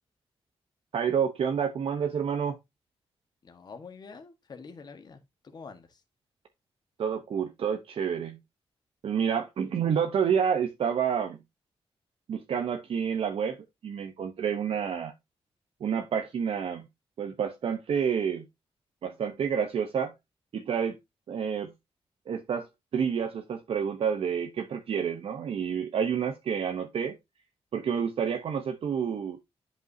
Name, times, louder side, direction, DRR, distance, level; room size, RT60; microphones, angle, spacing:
voice 1, 0.9-2.6 7.0-8.4 9.0-11.4 12.3-13.6 13.8-15.1 15.8-16.8 17.2-18.4 19.0-20.1 20.5-21.0 21.3-21.7 22.3-22.7 22.9-27.2 27.7-29.4, right 7 dB, 70° right, 0.9 m, -29 dB
voice 2, 3.4-6.0, left 5 dB, 40° left, 1.4 m, -46 dB
10.5 x 5.4 x 2.7 m
wide cardioid pair, 180°, 10 cm